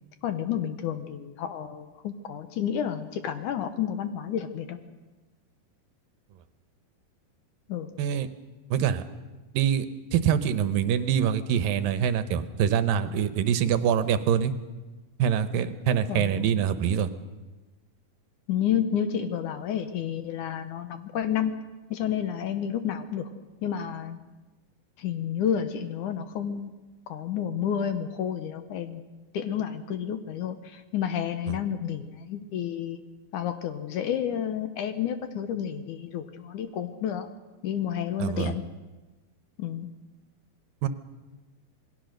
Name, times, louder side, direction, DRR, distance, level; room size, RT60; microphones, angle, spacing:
voice 1, 0.2-4.8 7.7-7.9 16.1-16.6 18.5-21.5 21.9-23.3 23.6-24.2 25.0-26.7 27.1-33.0 33.3-37.3 37.6-38.6 39.6-39.9, left 9 dB, 70° left, 9 dB, 2.2 m, -30 dB
voice 2, 8.7-9.0 9.5-9.9 10.1-14.5 15.2-17.1 31.5-31.6 38.2-38.5 40.8-40.9, right 8 dB, 75° right, 11 dB, 2.6 m, -24 dB
27.0 x 20.5 x 6.5 m, 1.2 s
omnidirectional pair, 4.2 m